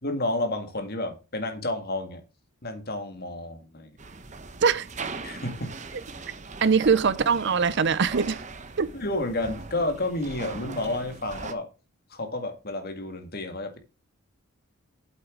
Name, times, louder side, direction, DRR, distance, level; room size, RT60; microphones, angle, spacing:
voice 1, 0.0-2.2 2.6-4.0 5.2-5.7 8.9-11.7 12.1-13.8, left 2 dB, 45° left, 1.9 m, -30 dB
sound 1, 4.0-11.5, right 3 dB, 30° right, 0.9 m, -40 dB
voice 2, 6.6-8.4 8.8-8.9, right 5 dB, 50° right, 0.5 m, -22 dB
9.1 x 8.1 x 3.8 m
head